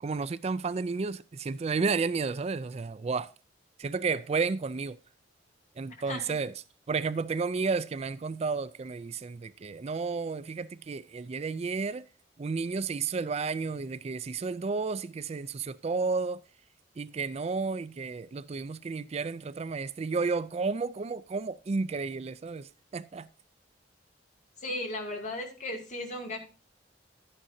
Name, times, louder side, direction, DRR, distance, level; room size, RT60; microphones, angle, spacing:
voice 1, 0.0-3.3 3.8-5.0 5.8-6.5 6.9-12.1 12.4-16.4 17.0-23.3, right 4 dB, 35° right, 0.4 m, -32 dB
voice 2, 24.6-26.4, left 1 dB, 45° left, 2.5 m, -36 dB
11.5 x 10.0 x 2.7 m
head